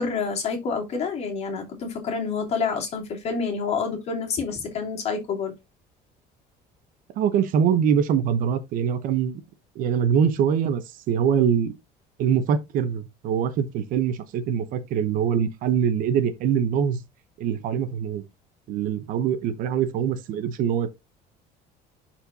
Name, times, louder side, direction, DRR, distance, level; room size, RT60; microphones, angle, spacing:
voice 1, 0.0-5.5, left 5 dB, 40° left, 2.7 m, -28 dB
voice 2, 7.2-9.4 9.7-10.8 11.1-11.7 12.2-17.0 17.4-18.2 18.7-20.9, right 8 dB, 55° right, 1.0 m, -23 dB
11.5 x 4.4 x 2.8 m
cardioid pair, 165°, 17 cm